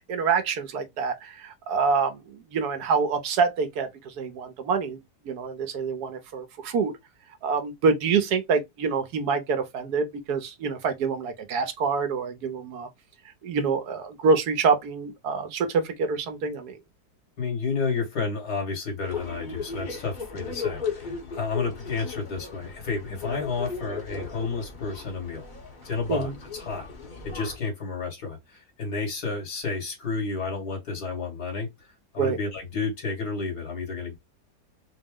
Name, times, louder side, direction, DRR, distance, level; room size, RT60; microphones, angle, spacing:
voice 1, 0.0-5.0 5.2-6.9 7.4-12.9 13.4-16.8 26.1-26.3 32.2-32.4, right 5 dB, 75° right, 1.3 m, -26 dB
voice 2, 17.4-25.5 25.8-26.9 27.2-31.9 32.1-34.2, left 4 dB, 75° left, 2.4 m, -31 dB
sound 1, 19.0-27.6, left 5 dB, 35° left, 0.9 m, -36 dB
4.3 x 2.0 x 3.6 m
omnidirectional pair, 1.7 m